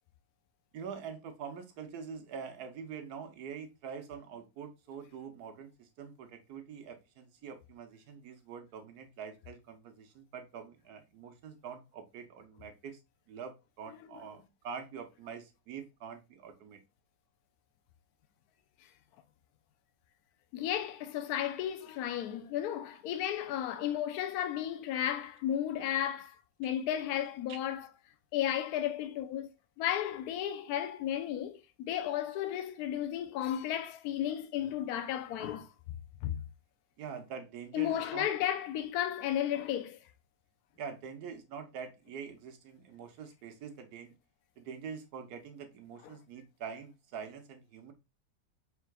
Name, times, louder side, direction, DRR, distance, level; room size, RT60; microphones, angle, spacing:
voice 1, 0.7-13.0 13.3-16.8 27.5-27.6 37.0-38.3 40.8-44.1 44.6-47.9, right 6 dB, 70° right, 1.3 m, -45 dB
voice 2, 20.5-27.9 28.3-29.5 29.8-35.7 36.2-36.4 37.7-40.0, left 11 dB, 70° left, 1.1 m, -33 dB
4.6 x 3.7 x 2.3 m
omnidirectional pair, 1.8 m